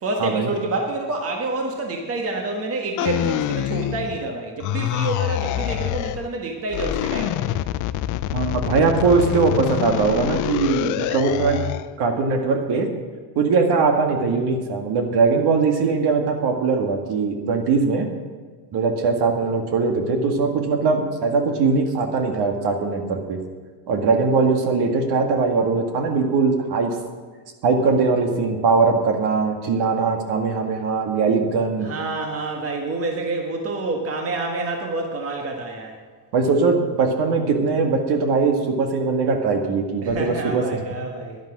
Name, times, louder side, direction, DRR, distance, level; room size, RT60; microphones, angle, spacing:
voice 1, 0.0-7.5 31.8-36.0 40.0-41.4, right 2 dB, 30° right, 2 dB, 1.5 m, -28 dB
sound 1, 3.0-4.3 4.6-6.3 6.7-11.9, left 13 dB, 40° left, 0.5 m, -26 dB
voice 2, 8.3-11.6 12.0-12.9 13.4-18.1 18.7-23.4 23.9-26.9 27.6-31.9 36.3-40.8, right 4 dB, 50° right, 4 dB, 1.9 m, -21 dB
11.0 x 11.0 x 6.2 m, 1.5 s
cardioid pair, 140°, 50 cm